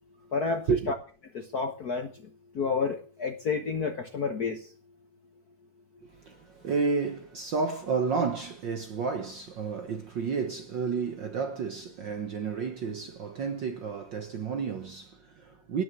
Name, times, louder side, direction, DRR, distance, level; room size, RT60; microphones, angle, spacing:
voice 1, 0.3-0.9 1.3-4.7, left 5 dB, 75° left, 0.8 m, -30 dB
voice 2, 6.0-15.8, right 5 dB, 65° right, 1.1 m, -31 dB
18.0 x 6.5 x 8.0 m
omnidirectional pair, 3.5 m